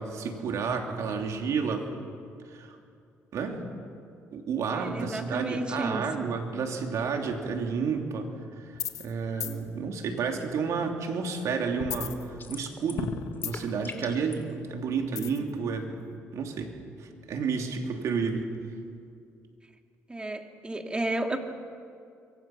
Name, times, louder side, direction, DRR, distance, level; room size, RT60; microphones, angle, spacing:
voice 1, 0.0-1.9 2.5-2.7 3.3-3.7 4.3-8.3 8.6-8.7 9.0-16.0 16.3-16.7 17.0-18.5, right 5 dB, 70° right, 3 dB, 2.9 m, -31 dB
voice 2, 4.7-6.3 20.1-21.4, right 1 dB, 15° right, 4 dB, 2.3 m, -32 dB
sound 1, 8.7-9.1 9.4-9.6 11.8-12.7 13.0-13.8 15.2-15.5, left 9 dB, 75° left, 1.5 m, -35 dB
sound 2, 12.4-13.1 13.3-14.4, left 4 dB, 35° left, 2.8 m, -42 dB
26.0 x 23.5 x 6.0 m, 2.4 s
cardioid pair, 80°, 6 cm